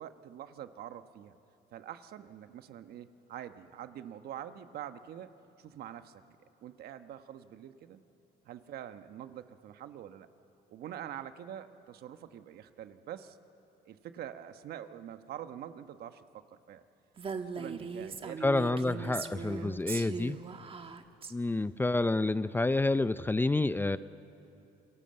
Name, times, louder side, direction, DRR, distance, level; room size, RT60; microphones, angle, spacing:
voice 1, 0.0-1.4 1.7-5.3 5.6-6.2 6.6-8.0 8.4-10.3 10.7-13.4 13.8-16.8 17.3-20.1, right 10 dB, 70° right, 9 dB, 1.2 m, -45 dB
Female speech woman speaking, 17.2-21.3, right 5 dB, 35° right, 1.3 m, -39 dB
voice 2, 18.4-20.4 21.3-24.0, left 2 dB, 10° left, 14 dB, 0.5 m, -28 dB
28.0 x 22.0 x 7.8 m, 2.9 s
cardioid pair, 110°, 17 cm